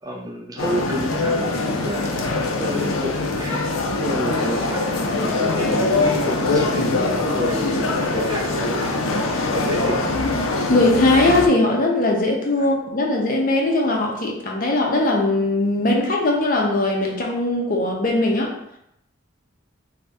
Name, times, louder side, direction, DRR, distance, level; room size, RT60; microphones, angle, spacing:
voice 1, 0.0-2.2 2.6-4.8 5.2-10.2 12.6-12.7, equal, 20° right, 1 dB, 0.4 m, -30 dB
sound 1, 0.6-11.5, left 2 dB, 90° left, 0.5 m, -22 dB
voice 2, 10.7-18.5, left 2 dB, 45° left, 0 dB, 0.6 m, -20 dB
2.8 x 2.6 x 3.4 m, 0.79 s
head